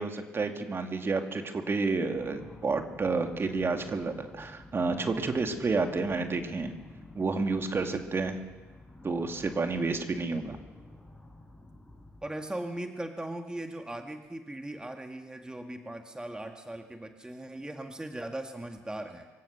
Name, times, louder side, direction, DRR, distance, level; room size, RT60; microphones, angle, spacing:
voice 1, 0.0-6.7 7.2-8.4 9.0-10.6, right 3 dB, 35° right, 5 dB, 2.4 m, -30 dB
sound 1, 2.1-12.3, left 2 dB, 10° left, 5.7 m, -50 dB
voice 2, 12.2-19.3, right 1 dB, 10° right, 5 dB, 1.8 m, -39 dB
24.5 x 16.0 x 6.6 m, 1.4 s
hypercardioid pair, 55°, 7 cm